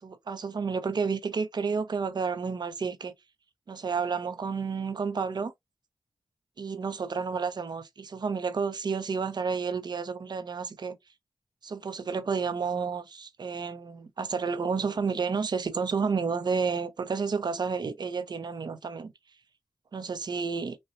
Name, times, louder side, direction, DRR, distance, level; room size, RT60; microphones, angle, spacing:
voice 1, 0.0-3.1 3.7-5.5 6.6-11.0 11.6-19.1 19.9-20.8, right 5 dB, 70° right, 0.7 m, -31 dB
4.2 x 2.2 x 2.5 m
cardioid pair, 45°, 8 cm